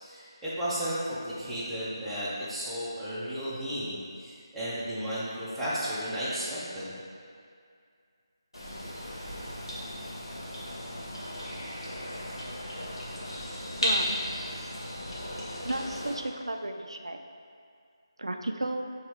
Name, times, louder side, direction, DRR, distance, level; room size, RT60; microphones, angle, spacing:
voice 1, 0.0-7.0, equal, ahead, -14 dB, 0.8 m, -34 dB
sound 1, 8.5-16.1, equal, 85° left, 1.3 m, -35 dB
voice 2, 13.8-14.2 15.6-17.2 18.2-18.9, right 1 dB, 90° right, 4 dB, 0.3 m, -33 dB
5.6 x 3.1 x 3.1 m, 2.3 s
figure-of-eight pair, 160°, 3 cm